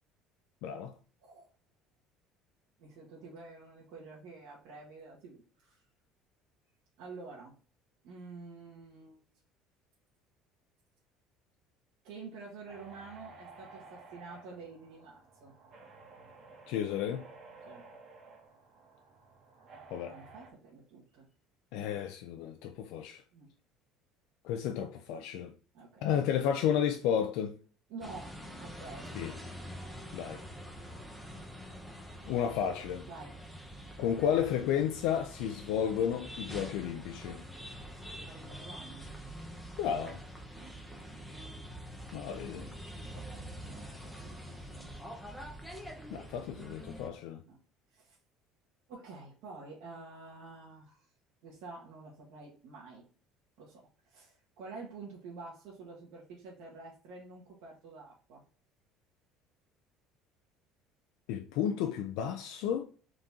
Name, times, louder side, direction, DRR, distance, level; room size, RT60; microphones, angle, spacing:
voice 1, 0.6-0.9 16.7-17.3 19.9-20.2 21.7-23.2 24.4-25.5 26.0-27.5 29.1-29.3 30.1-30.4 32.2-33.1 34.0-37.4 39.8-40.2 42.1-42.7 46.1-47.4 61.3-62.8, left 9 dB, 70° left, 0.4 m, -32 dB
voice 2, 2.8-5.8 7.0-7.6 8.0-9.2 12.0-15.5 17.7-17.8 20.1-21.3 23.3-23.5 25.7-26.1 27.9-29.1 33.0-33.4 38.2-39.1 40.5-40.8 43.1-44.9 47.5-47.6 47.9-48.2 48.9-51.1 51.4-53.0 53.6-58.4, right 3 dB, 75° right, 1.3 m, -49 dB
sound 1, 12.7-20.5, right 3 dB, 40° right, 0.8 m, -54 dB
sound 2, 28.0-47.1, equal, ahead, 0.6 m, -45 dB
3.8 x 2.8 x 3.6 m
cardioid pair, 160°, 0 cm